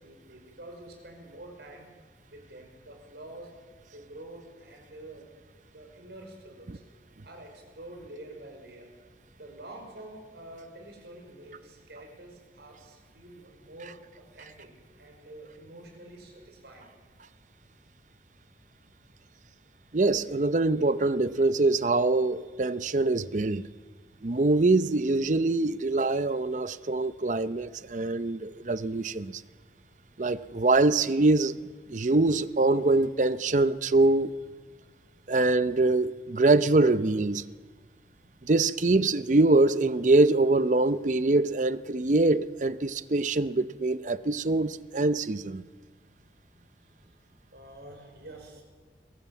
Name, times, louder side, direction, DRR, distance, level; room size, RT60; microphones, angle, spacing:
voice 1, 0.0-1.9 2.3-3.5 3.8-5.3 5.7-6.8 7.2-8.9 9.4-14.7 15.0-16.9 47.0-47.2 47.5-48.6, right 1 dB, 75° right, 5.4 m, -47 dB
voice 2, 19.9-23.7 24.2-29.4 30.2-31.6 31.9-34.3 35.3-37.4 38.4-45.6, right 2 dB, 45° right, 0.6 m, -24 dB
22.0 x 16.5 x 7.2 m
head